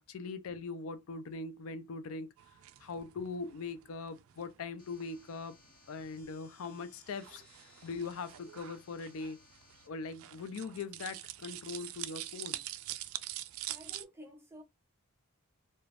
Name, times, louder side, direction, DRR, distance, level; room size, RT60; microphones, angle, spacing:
voice 1, 0.0-2.3 2.8-5.6 5.9-7.4 7.8-9.4 9.9-12.6, left 4 dB, 70° left, 0.4 m, -41 dB
sound 1, 2.4-14.0, right 14 dB, 70° right, 0.3 m, -46 dB
sound 2, 4.8-9.9, left 4 dB, 40° left, 0.8 m, -63 dB
voice 2, 13.7-14.6, equal, 10° right, 0.7 m, -52 dB
3.2 x 2.1 x 2.4 m
head